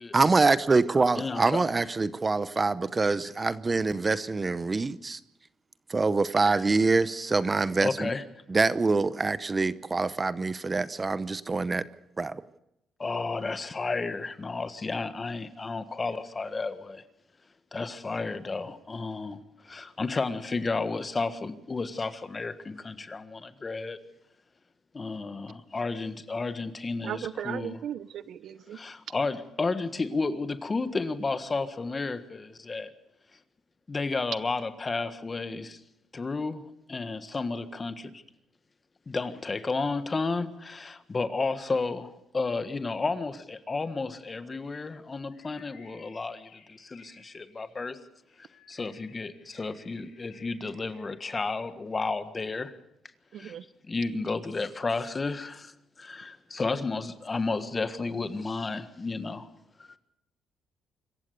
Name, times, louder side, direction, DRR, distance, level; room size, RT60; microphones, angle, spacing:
voice 1, 0.1-5.2 5.9-8.1 8.5-11.8 12.2-12.3, right 3 dB, 25° right, 15 dB, 0.8 m, -25 dB
voice 2, 1.1-1.6 7.8-8.2 13.0-17.0 17.7-24.0 24.9-27.8 28.7-32.9 33.9-35.8 36.1-36.6 36.9-38.2 39.1-48.0 48.4-52.8 53.3-53.6 53.8-59.5 59.8-59.9, left 3 dB, 30° left, 11 dB, 1.6 m, -32 dB
voice 3, 27.0-28.8 53.3-53.6, right 10 dB, 70° right, 17 dB, 0.7 m, -36 dB
Bird, 45.3-51.6, left 5 dB, 70° left, 5.2 m, -58 dB
25.5 x 15.0 x 6.8 m, 0.82 s
cardioid pair, 90°, 0 cm